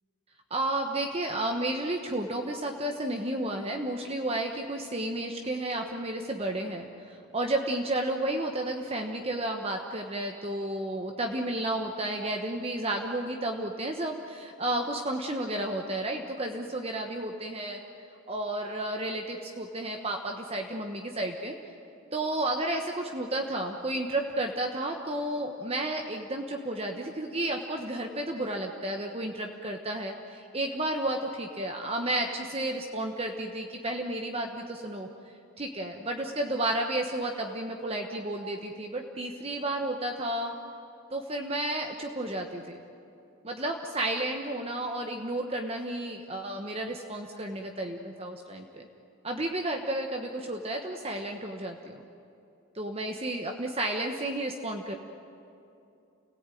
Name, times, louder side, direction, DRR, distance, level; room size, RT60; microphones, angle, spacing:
voice 1, 0.5-17.8 18.3-21.6 22.1-35.1 35.6-40.6 41.1-42.7 43.4-48.8 49.2-52.0 52.7-54.9, right 1 dB, 30° right, 3 dB, 1.2 m, -32 dB
29.0 x 17.5 x 9.2 m, 2.7 s
head